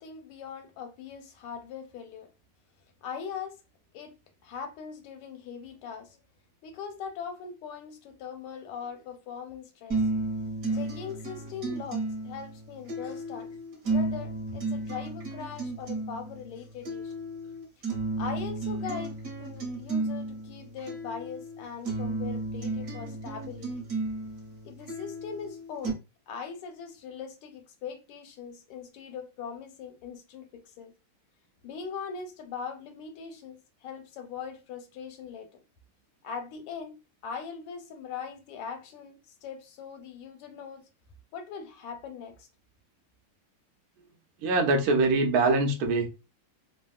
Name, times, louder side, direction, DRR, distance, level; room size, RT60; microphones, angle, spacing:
voice 1, 0.0-2.3 3.0-3.6 3.9-4.1 4.4-6.2 6.6-10.1 10.7-17.1 18.2-23.7 24.6-26.0 26.3-30.9 31.6-35.5 36.2-37.0 37.2-40.8 41.3-42.5, left 6 dB, 85° left, 1.5 m, -41 dB
sound 1, 9.9-25.9, right 2 dB, 50° right, 1.1 m, -33 dB
voice 2, 44.4-46.2, right 3 dB, 75° right, 0.8 m, -24 dB
3.4 x 2.1 x 2.3 m
omnidirectional pair, 2.4 m